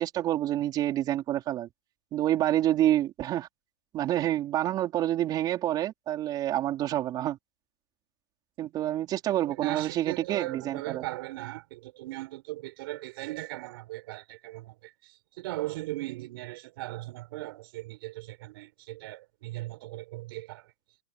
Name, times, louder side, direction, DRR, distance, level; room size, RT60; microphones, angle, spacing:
voice 1, 0.0-1.7 2.1-3.5 3.9-7.4 8.6-11.0, right 13 dB, 30° right, 4.6 m, -28 dB
voice 2, 9.4-20.7, right 19 dB, 55° right, 6.6 m, -38 dB
hypercardioid pair, 145°, 14 cm